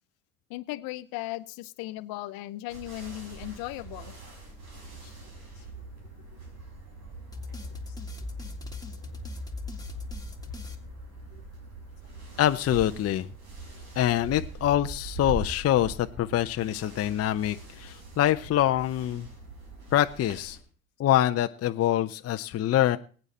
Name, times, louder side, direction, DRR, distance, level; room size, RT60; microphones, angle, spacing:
voice 1, 0.5-4.1, left 17 dB, 60° left, 12 dB, 1.1 m, -37 dB
sound 1, 2.7-20.6, right 3 dB, 75° right, 5.8 m, -43 dB
sound 2, 7.3-11.6, left 4 dB, 10° left, 2.1 m, -40 dB
voice 2, 12.4-13.3 14.0-19.3 19.9-20.6 21.0-23.0, left 12 dB, 35° left, 8 dB, 0.7 m, -25 dB
21.0 x 9.0 x 4.2 m, 0.41 s
hypercardioid pair, 70°, 41 cm